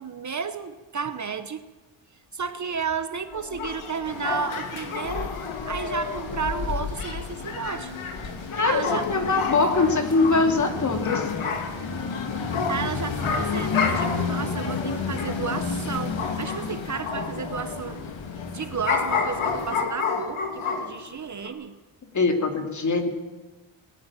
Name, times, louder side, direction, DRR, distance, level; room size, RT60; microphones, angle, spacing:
voice 1, 0.0-1.7 2.3-5.3 5.7-7.9 8.5-9.1 12.7-18.0 18.5-21.7, right 6 dB, 35° right, 10 dB, 1.0 m, -32 dB
sound 1, 3.3-16.7 17.0-21.1 21.4-21.5, left 5 dB, 85° left, 2.9 m, -31 dB
sound 2, 4.0-19.8, left 5 dB, 65° left, 2.9 m, -32 dB
voice 2, 8.5-11.3 22.1-23.1, left 3 dB, 35° left, 5 dB, 2.7 m, -22 dB
20.0 x 18.5 x 7.4 m, 1.2 s
cardioid pair, 130°, 50 cm